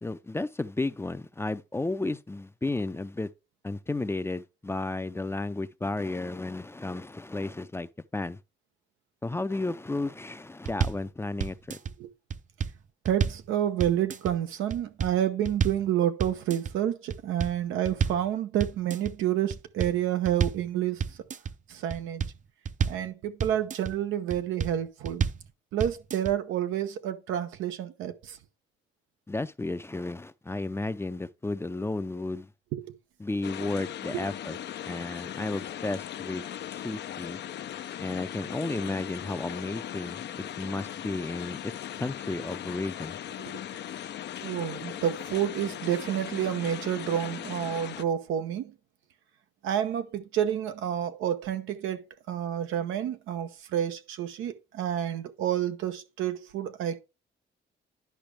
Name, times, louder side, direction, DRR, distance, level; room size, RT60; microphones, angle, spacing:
voice 1, 0.0-3.3 3.6-8.4 9.2-11.8 29.3-32.5 33.2-34.6 34.9-37.4 38.0-43.2, left 2 dB, 10° left, 0.5 m, -33 dB
sound 1, 10.7-11.1 11.4-11.9 12.3-13.5 13.8-14.3 14.7-15.2 15.4-15.9 16.2-16.7 17.1-18.3 18.6-19.1 19.5-20.7 21.0-21.5 21.9-23.1 23.4-23.9 24.3-24.8 25.0-25.5 25.8-26.3, right 7 dB, 40° right, 0.6 m, -30 dB
voice 2, 13.0-21.2 21.7-22.2 22.9-25.2 25.7-28.4 32.7-32.9 34.1-34.2 43.4-43.6 44.4-48.7 49.6-57.0, right 10 dB, 90° right, 0.9 m, -29 dB
sound 2, 33.4-48.0, left 11 dB, 60° left, 0.5 m, -38 dB
10.5 x 5.1 x 3.3 m
cardioid pair, 90°, 20 cm